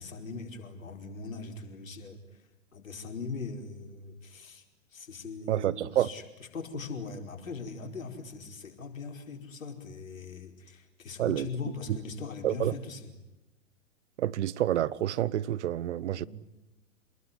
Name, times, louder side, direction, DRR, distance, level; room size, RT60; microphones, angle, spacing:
voice 1, 0.0-2.2 2.7-4.6 4.9-6.2 6.5-13.1 16.1-16.3, left 4 dB, 75° left, 5.0 m, -40 dB
voice 2, 5.5-6.1 11.2-11.5 12.4-12.7 14.2-16.3, right 12 dB, 60° right, 1.0 m, -28 dB
28.0 x 21.0 x 9.9 m
figure-of-eight pair, 110°, 40 cm